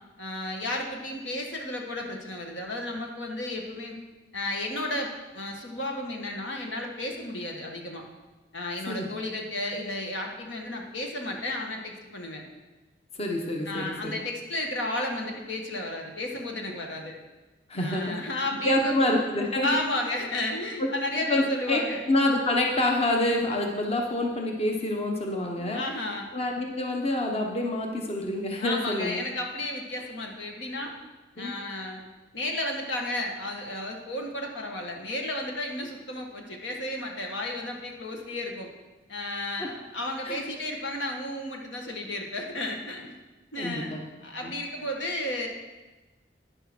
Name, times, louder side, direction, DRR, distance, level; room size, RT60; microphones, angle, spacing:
voice 1, 0.2-4.0 4.3-8.0 8.5-12.4 13.6-17.1 17.7-19.1 19.6-22.0 25.6-26.3 28.6-30.9 31.3-32.0 32.3-38.7 39.1-43.1 43.5-43.9 44.2-45.5, left 1 dB, 80° left, 1 dB, 1.6 m, -33 dB
voice 2, 13.2-14.1 17.7-18.2 18.6-19.8 20.8-20.9 21.3-25.8 26.3-29.2 31.4-31.5 39.6-39.7 40.2-40.4 43.6-44.0 44.4-44.5, left 1 dB, 35° left, 1 dB, 1.0 m, -27 dB
10.0 x 6.5 x 6.1 m, 1.2 s
head